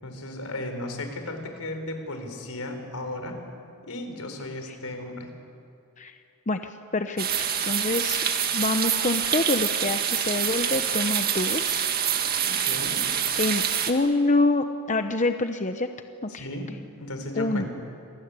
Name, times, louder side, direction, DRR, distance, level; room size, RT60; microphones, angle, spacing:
voice 1, 0.0-3.4 3.9-5.3 12.3-13.1 16.3-16.7 17.0-17.7, left 1 dB, 85° left, 6 dB, 4.3 m, -35 dB
voice 2, 6.5-8.2 8.5-11.9 13.4-15.9 16.2-16.4 17.3-17.6, left 2 dB, 35° left, 8 dB, 0.8 m, -26 dB
sound 1, 7.2-13.9, right 8 dB, 45° right, 1.9 m, -26 dB
27.5 x 20.5 x 9.7 m, 2.4 s
head